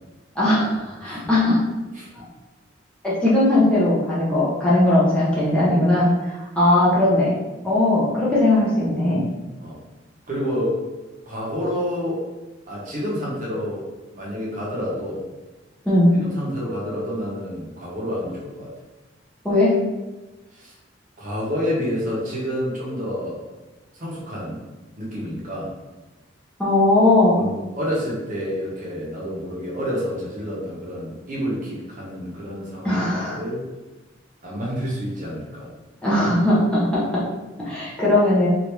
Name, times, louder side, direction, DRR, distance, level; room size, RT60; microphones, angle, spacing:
voice 1, 0.4-1.6 2.1-2.2 3.0-7.3 7.6-9.2 15.8-16.1 19.4-19.7 26.6-27.4 32.8-33.4 36.0-37.2 37.6-38.5, left 1 dB, 5° left, -9 dB, 0.7 m, -19 dB
voice 2, 10.3-10.8 11.3-12.2 12.7-13.8 14.1-15.2 16.1-18.7 20.5-20.7 21.2-23.4 23.9-24.6 25.0-25.7 27.4-33.0 33.4-33.6 34.4-35.7, equal, 40° right, -5 dB, 0.9 m, -28 dB
3.3 x 2.5 x 3.0 m, 1.1 s
head